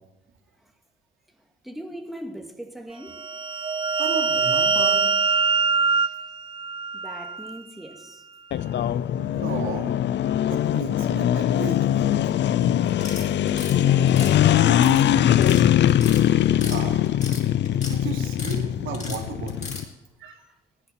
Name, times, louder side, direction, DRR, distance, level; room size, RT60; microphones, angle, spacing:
voice 1, 1.6-3.2 6.9-8.2 13.7-15.7 17.7-17.8, equal, ahead, 2.1 m, -38 dB
sound 1, 3.1-7.6, right 5 dB, 25° right, 0.5 m, -23 dB
voice 2, 4.0-5.1 6.0-6.1 9.2-9.9 10.5-12.1 16.6-17.2 17.7-19.8 20.2-20.4, right 5 dB, 85° right, 3.0 m, -34 dB
sound 2, 8.5-19.8, left 11 dB, 65° left, 0.6 m, -21 dB
sound 3, 12.9-13.7 14.1-15.0 15.3-15.6 15.9-16.8 17.0-18.0 18.2-18.6 18.9-19.8, left 3 dB, 35° left, 7.4 m, -36 dB
18.5 x 11.0 x 5.9 m
cardioid pair, 90°, 20 cm